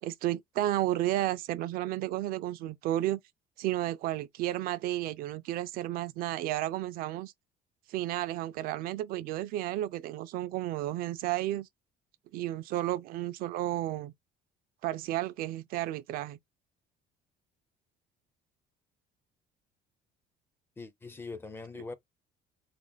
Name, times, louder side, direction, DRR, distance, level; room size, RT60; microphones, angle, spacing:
voice 1, 0.0-3.2 3.6-7.3 7.9-11.7 12.3-14.1 14.8-16.4, right 14 dB, 65° right, 0.4 m, -32 dB
voice 2, 20.8-21.9, left 3 dB, 15° left, 0.4 m, -42 dB
3.8 x 2.5 x 3.8 m
cardioid pair, 155°, 16 cm